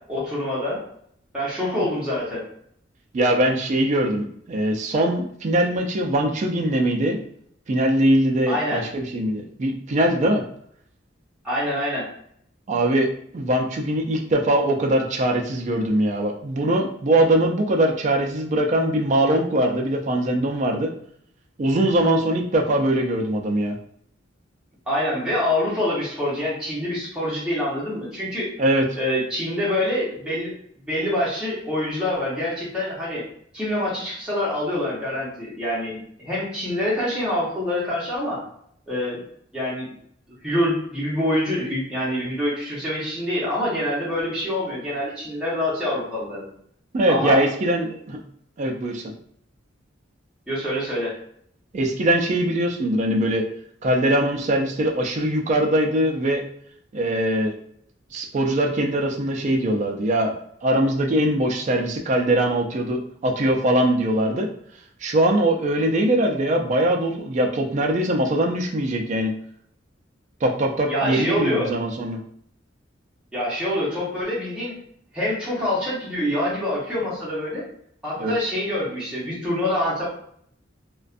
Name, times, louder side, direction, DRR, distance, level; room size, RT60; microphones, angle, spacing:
voice 1, 0.1-0.8 1.3-2.4 8.5-8.8 11.4-12.1 24.9-28.5 28.9-30.5 30.9-33.2 33.5-38.4 38.9-39.2 39.5-39.9 40.4-46.4 47.1-47.4 50.5-51.1 70.9-71.7 73.3-74.8 75.1-77.6 78.0-80.1, left 1 dB, 5° right, -9 dB, 0.8 m, -25 dB
voice 2, 3.1-7.2 7.7-10.4 12.7-20.9 21.6-23.7 28.6-28.9 46.9-48.2 48.6-49.1 51.7-53.5 53.8-56.4 56.9-57.5 58.1-60.3 60.6-64.5 65.0-69.4 70.4-72.2 78.2-78.3, right 1 dB, 40° right, 2 dB, 0.4 m, -22 dB
2.4 x 2.2 x 2.4 m, 0.67 s
head